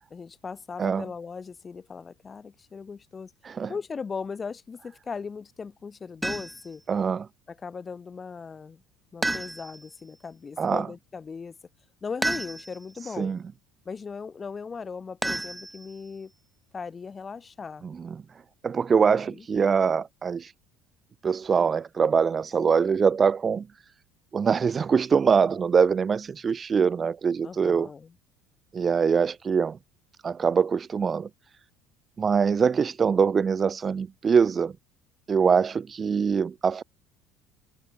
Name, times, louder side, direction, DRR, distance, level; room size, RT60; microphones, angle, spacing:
voice 1, 0.1-3.3 3.7-6.8 7.5-8.8 9.1-11.6 12.0-13.3 13.8-16.3 16.7-17.8 19.1-19.4 27.4-28.1, left 5 dB, 20° left, 3.0 m, -38 dB
sound 1, 6.2-6.8 9.2-9.9 12.2-12.9 15.2-16.1, right 1 dB, 5° right, 2.5 m, -31 dB
voice 2, 6.9-7.3 10.6-10.9 13.2-13.4 17.8-18.2 18.6-20.5 21.2-23.7 24.3-27.9 28.7-29.8 30.2-31.3 32.2-34.7 35.3-36.8, right 6 dB, 20° right, 0.7 m, -23 dB
cardioid pair, 160°, 0 cm